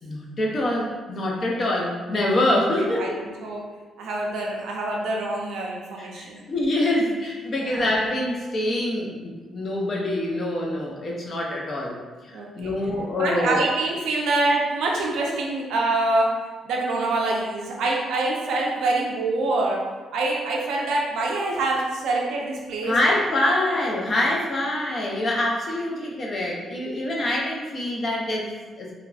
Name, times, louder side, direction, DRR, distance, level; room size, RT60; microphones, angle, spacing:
voice 1, 0.0-3.3 6.0-12.0 12.2-13.6 22.8-28.9, left 1 dB, 35° left, -2 dB, 0.5 m, -25 dB
voice 2, 4.0-6.4 7.6-7.8 12.3-12.7 13.2-16.3 16.6-19.8 20.1-22.9, right 2 dB, 85° right, -2 dB, 0.5 m, -25 dB
3.0 x 2.5 x 2.3 m, 1.3 s
cardioid pair, 170°, 0 cm